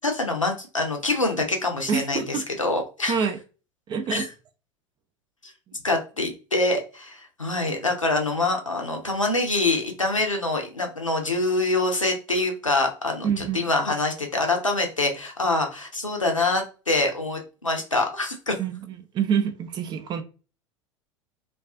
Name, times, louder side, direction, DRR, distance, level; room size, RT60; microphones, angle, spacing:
voice 1, 0.0-3.3 4.1-4.3 5.4-5.5 5.8-18.5, left 2 dB, 90° left, 0.5 m, -25 dB
voice 2, 1.9-2.4 3.1-3.4 3.9-4.3 5.7-5.8 13.2-13.7 18.6-20.2, right 7 dB, 30° right, 0.4 m, -26 dB
2.3 x 2.3 x 2.3 m
figure-of-eight pair, 75°, 16 cm